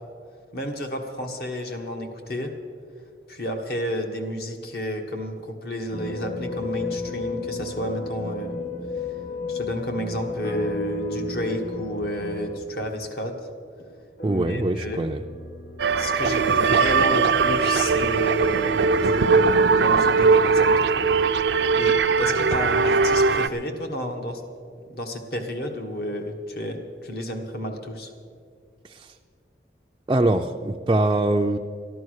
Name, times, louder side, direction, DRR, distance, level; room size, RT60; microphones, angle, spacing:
voice 1, 0.5-2.5 3.3-9.1 9.5-13.4 14.3-15.0 16.0-21.1 21.7-24.4 24.9-28.1, left 1 dB, 60° left, 4 dB, 1.5 m, -31 dB
sound 1, 5.9-12.6, left 3 dB, 35° left, 1.0 m, -33 dB
sound 2, 10.4-13.8 14.2-17.9 18.6-22.8 23.4-23.5, equal, 85° left, 1.0 m, -38 dB
voice 2, 14.2-15.2 28.8-29.1 30.1-31.6, right 2 dB, 25° right, 2 dB, 0.4 m, -23 dB
sound 3, 15.8-23.5, right 4 dB, 75° right, 0.5 m, -20 dB
14.0 x 11.0 x 6.4 m, 2.2 s
head